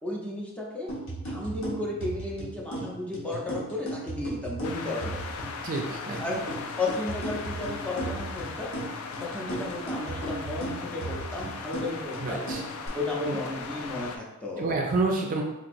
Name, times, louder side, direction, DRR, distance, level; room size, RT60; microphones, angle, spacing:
voice 1, 0.0-0.9 1.2-5.2 6.2-6.4 6.8-8.7 9.2-12.4 12.9-14.7, left 2 dB, 5° left, -4 dB, 0.6 m, -33 dB
sound 1, 0.9-12.9, right 1 dB, 60° left, 1.0 m, -37 dB
sound 2, 4.6-14.2, left 5 dB, 85° left, 0.3 m, -38 dB
voice 2, 5.6-6.3 12.2-12.6 13.2-13.4 14.6-15.4, right 3 dB, 40° right, 0 dB, 0.4 m, -28 dB
3.9 x 2.8 x 2.5 m, 0.99 s
head